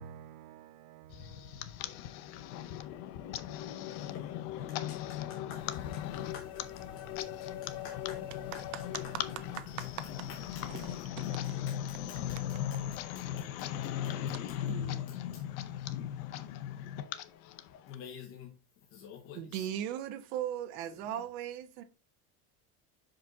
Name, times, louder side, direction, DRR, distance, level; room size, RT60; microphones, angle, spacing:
voice 1, 0.0-2.2, right 8 dB, 55° right, 0.7 m, -52 dB
sound 1, 1.1-18.0, left 11 dB, 75° left, 0.8 m, -38 dB
voice 2, 3.9-4.3 4.6-8.2 8.5-8.6 10.5-10.6 11.7-13.7 14.0-14.1 15.3-15.4 17.9-18.5 18.9-19.7 21.0-21.2, left 7 dB, 30° left, 0.8 m, -51 dB
sound 2, 5.5-11.1, right 1 dB, 5° right, 4.3 m, -56 dB
voice 3, 11.3-11.6 14.7-15.1 19.4-21.8, right 10 dB, 90° right, 1.1 m, -38 dB
6.0 x 5.1 x 3.9 m
cardioid pair, 180°, 41 cm